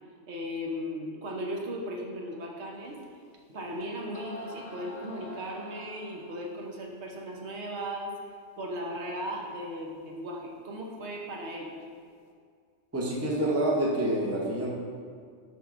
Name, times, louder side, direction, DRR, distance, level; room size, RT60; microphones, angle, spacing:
voice 1, 0.3-3.0 3.5-8.1 8.6-11.8, equal, 70° right, -1 dB, 1.1 m, -37 dB
sound 1, 3.0-3.1 3.8-3.9 4.1-6.6, equal, 45° left, 0.7 m, -45 dB
voice 2, 12.9-14.7, right 1 dB, 15° right, -3 dB, 0.6 m, -27 dB
7.4 x 5.5 x 2.5 m, 2.1 s
omnidirectional pair, 1.2 m